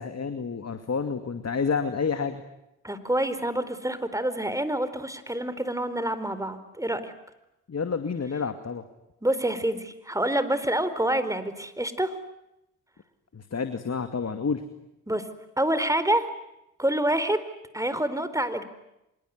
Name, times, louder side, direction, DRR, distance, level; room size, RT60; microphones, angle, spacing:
voice 1, 0.0-2.4 7.7-8.8 13.3-14.6, left 5 dB, 40° left, 8 dB, 2.4 m, -29 dB
voice 2, 2.8-7.1 9.2-12.1 15.1-15.3 15.6-16.3 16.8-17.4 17.7-18.6, right 1 dB, 10° right, 12 dB, 4.3 m, -27 dB
25.5 x 23.0 x 9.6 m, 0.87 s
hypercardioid pair, 45°, 38 cm